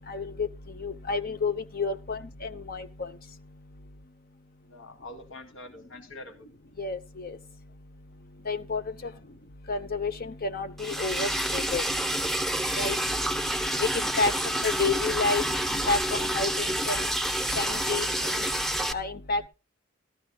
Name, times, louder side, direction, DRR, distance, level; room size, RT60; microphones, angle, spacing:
voice 1, 0.1-0.5 0.8-3.1 6.8-7.4 8.5-9.1 9.7-11.9 12.8-13.0 13.8-15.4 15.9-17.1 17.5-18.4 18.9-19.5, left 4 dB, 50° left, 10 dB, 0.7 m, -30 dB
voice 2, 4.6-6.5 9.0-9.1 14.2-14.4, left 2 dB, 70° left, 6 dB, 1.8 m, -45 dB
Liquid, 10.8-18.9, right 1 dB, ahead, 0.7 m, -28 dB
14.5 x 13.0 x 2.3 m, 0.30 s
head